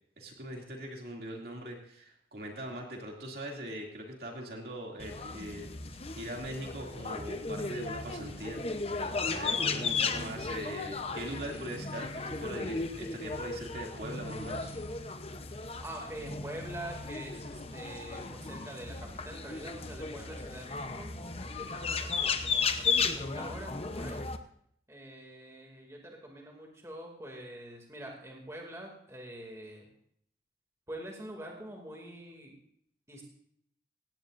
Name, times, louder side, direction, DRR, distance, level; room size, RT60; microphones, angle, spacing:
voice 1, 0.2-8.6 9.3-14.7, right 1 dB, 55° right, 0 dB, 2.7 m, -41 dB
sound 1, 5.0-24.4, left 4 dB, 35° left, 0.8 m, -35 dB
voice 2, 9.4-9.7 15.8-21.1 21.4-24.3 24.9-29.8 30.9-32.5 33.1-33.3, right 1 dB, 15° right, 0 dB, 2.5 m, -45 dB
17.5 x 16.5 x 2.6 m, 0.68 s
head